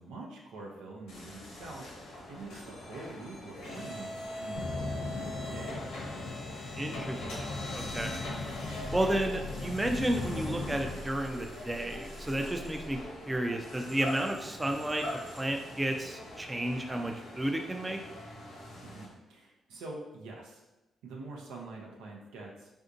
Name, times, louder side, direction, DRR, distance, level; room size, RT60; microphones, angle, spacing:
voice 1, 0.0-1.9 2.3-4.1 4.4-5.8 18.8-20.6 21.0-22.7, right 2 dB, 90° right, -1 dB, 0.5 m, -45 dB
sound 1, 1.1-19.1, left 2 dB, 90° left, 0.9 m, -42 dB
sound 2, 4.6-11.0, left 2 dB, 60° left, 0.7 m, -39 dB
voice 2, 6.8-8.1 8.9-13.0 13.3-18.0, right 1 dB, 15° right, 4 dB, 0.4 m, -32 dB
sound 3, 8.4-12.9 13.7-15.5, right 1 dB, 65° right, 1.0 m, -54 dB
3.5 x 2.6 x 2.5 m, 1.0 s
supercardioid pair, 60°, 0 cm